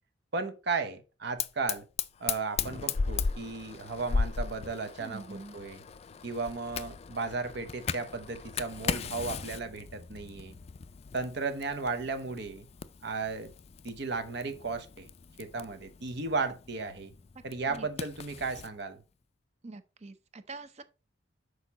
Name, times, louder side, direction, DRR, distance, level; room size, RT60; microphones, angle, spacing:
voice 1, 0.3-1.9 2.2-5.8 6.2-10.6 11.1-12.7 13.0-13.5 13.8-15.1 15.4-17.1 17.4-19.0, right 4 dB, 60° right, 0.9 m, -35 dB
Fire, 1.4-18.7, left 5 dB, 35° left, 0.3 m, -37 dB
voice 2, 5.0-5.5 17.7-17.9 19.6-20.8, right 3 dB, 35° right, 0.6 m, -44 dB
6.5 x 4.8 x 4.1 m
head